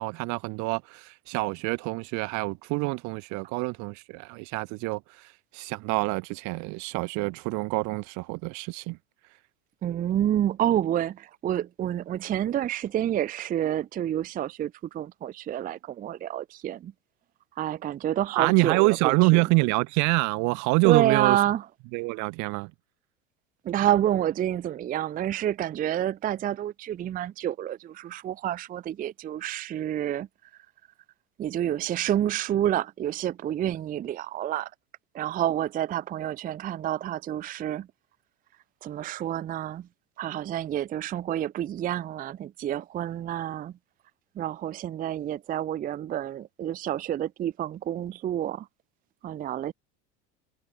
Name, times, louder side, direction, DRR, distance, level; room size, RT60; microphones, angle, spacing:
voice 1, 0.0-5.0 5.5-9.0 18.3-21.4 21.9-22.7, right 28 dB, 55° right, 0.7 m, -26 dB
voice 2, 9.8-16.9 17.6-19.3 20.8-21.6 23.6-30.3 31.4-34.7 35.1-37.9 38.8-39.9 40.2-43.7 44.4-48.7 49.2-49.7, right 11 dB, 25° right, 0.5 m, -28 dB
hypercardioid pair, 90°, 34 cm